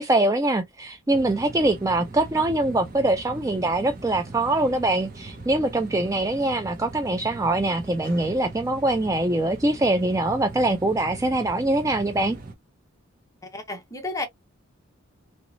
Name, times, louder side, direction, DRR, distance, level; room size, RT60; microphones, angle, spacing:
voice 1, 0.0-12.4, right 2 dB, 15° right, 0.3 m, -23 dB
sound 1, 1.1-12.5, right 3 dB, 40° right, 1.0 m, -40 dB
voice 2, 13.4-14.3, left 2 dB, 15° left, 1.0 m, -32 dB
3.0 x 3.0 x 2.6 m
head